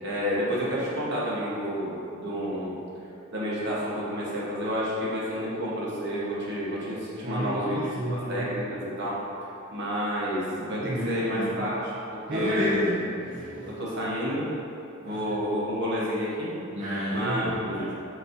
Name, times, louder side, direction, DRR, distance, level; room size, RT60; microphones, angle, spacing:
voice 1, 0.0-2.8 3.3-12.9 13.6-14.5 15.0-16.5 17.1-17.9, equal, 55° right, -7 dB, 1.0 m, -30 dB
voice 2, 7.2-8.5 10.7-11.6 12.3-13.7 15.0-15.2 16.7-17.9, equal, 35° right, -10 dB, 0.6 m, -31 dB
4.1 x 4.0 x 2.6 m, 2.6 s
head